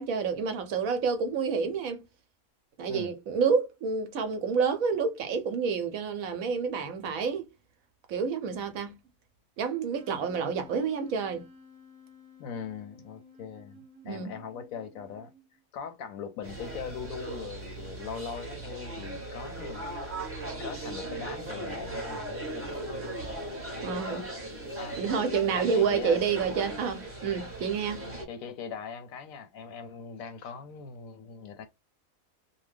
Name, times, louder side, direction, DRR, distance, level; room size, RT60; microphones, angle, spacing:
voice 1, 0.0-2.0 2.8-7.5 8.1-8.9 9.6-11.4 14.0-14.3 23.8-24.3 25.0-28.0, right 5 dB, 70° right, 1.0 m, -29 dB
Wind instrument woodwind instrument, 9.9-15.6, left 3 dB, 45° right, 0.6 m, -54 dB
voice 2, 12.4-15.3 15.7-20.3 20.6-22.7 24.8-25.1 25.5-26.3 28.3-31.6, left 6 dB, 70° left, 0.9 m, -40 dB
sound 1, 16.4-28.2, right 1 dB, 10° right, 0.7 m, -38 dB
2.7 x 2.1 x 3.3 m
omnidirectional pair, 1.7 m